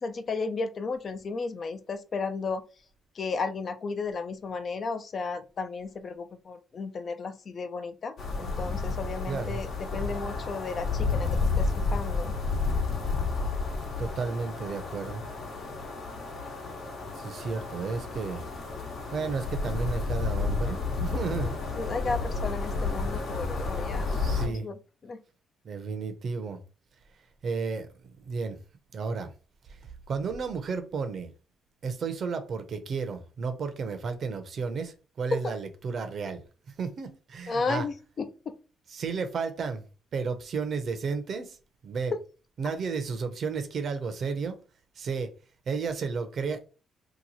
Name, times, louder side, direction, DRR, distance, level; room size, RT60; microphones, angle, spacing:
voice 1, 0.0-2.6 3.1-11.3 11.6-12.3 21.8-24.2 24.4-24.8 25.0-25.2 35.3-35.6 37.5-38.5 42.1-42.2, left 4 dB, 50° left, 0.5 m, -33 dB
sound 1, 8.2-24.5, left 4 dB, 65° left, 1.0 m, -31 dB
voice 2, 9.3-9.6 14.0-15.2 17.2-18.5 19.1-21.6 23.5-24.7 25.6-26.6 27.4-27.9 28.2-28.6 28.9-29.3 29.7-29.8 30.1-31.3 31.8-36.4 36.8-37.9 38.9-39.9 40.1-41.6 41.8-42.1 42.6-44.6 45.0-45.3 45.7-46.7, right 5 dB, 55° right, 0.7 m, -32 dB
2.9 x 2.3 x 4.0 m
cardioid pair, 90°, 0 cm